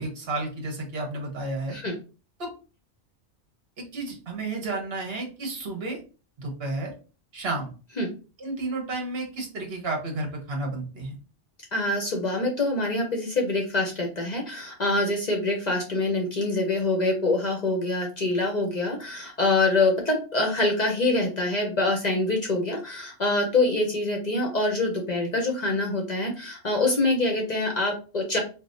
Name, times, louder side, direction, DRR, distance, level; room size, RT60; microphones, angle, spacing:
voice 1, 0.0-1.8 2.4-2.5 3.8-6.0 6.4-6.9 7.3-7.7 8.4-11.2, right 2 dB, 60° right, 1 dB, 1.2 m, -32 dB
voice 2, 11.7-28.4, left 2 dB, 45° left, 1 dB, 0.7 m, -25 dB
4.8 x 2.1 x 2.6 m, 0.35 s
omnidirectional pair, 1.2 m